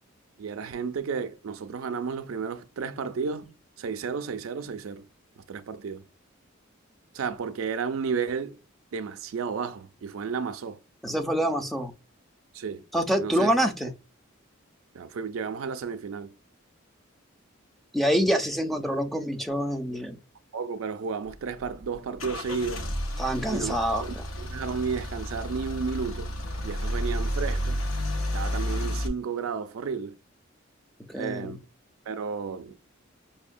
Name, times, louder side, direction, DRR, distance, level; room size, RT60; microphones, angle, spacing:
voice 1, 0.4-5.0 5.5-6.0 7.1-8.6 8.9-10.8 12.5-12.8 13.2-13.5 13.8-13.9 14.9-16.3 20.5-22.9 23.5-26.3 26.6-27.8 28.3-30.1 31.1-31.6 32.1-32.8, right 5 dB, 75° right, 0.4 m, -32 dB
voice 2, 11.0-11.9 12.9-13.9 17.9-20.2 23.2-24.0 31.1-31.6, equal, ahead, 0.5 m, -26 dB
Car / Engine starting / Idling, 21.3-29.1, equal, 75° left, 0.6 m, -31 dB
5.3 x 2.1 x 2.5 m
head